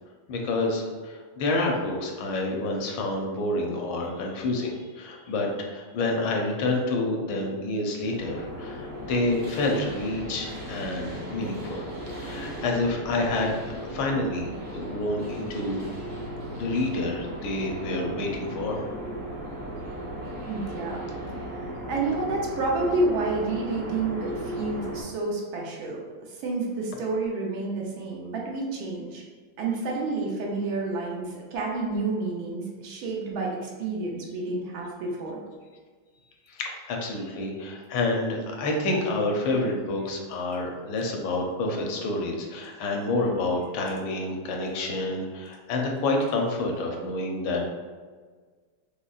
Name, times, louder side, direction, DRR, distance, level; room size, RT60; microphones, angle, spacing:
voice 1, 0.3-11.9 12.2-15.8 16.5-18.9 36.5-47.7, left 2 dB, 80° left, 1 dB, 1.4 m, -28 dB
sound 1, 8.2-25.0, right 1 dB, 45° right, 0.9 m, -36 dB
voice 2, 20.4-21.0 21.5-26.0 26.3-29.2 29.6-35.4, right 3 dB, 75° right, -2 dB, 1.4 m, -30 dB
5.1 x 2.0 x 2.3 m, 1.5 s
omnidirectional pair, 2.3 m